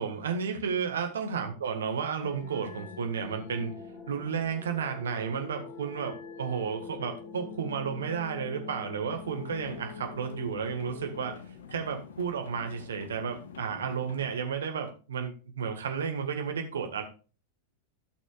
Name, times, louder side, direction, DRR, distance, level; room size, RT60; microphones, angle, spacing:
voice 1, 0.0-3.7 4.1-11.4 11.7-17.0, right 6 dB, 65° right, 5 dB, 1.6 m, -32 dB
sound 1, 2.2-11.3, left 5 dB, 45° left, 1.7 m, -45 dB
sound 2, 9.1-14.4, left 6 dB, 60° left, 1.0 m, -47 dB
15.0 x 6.1 x 2.4 m, 0.34 s
figure-of-eight pair, 90°, 0 cm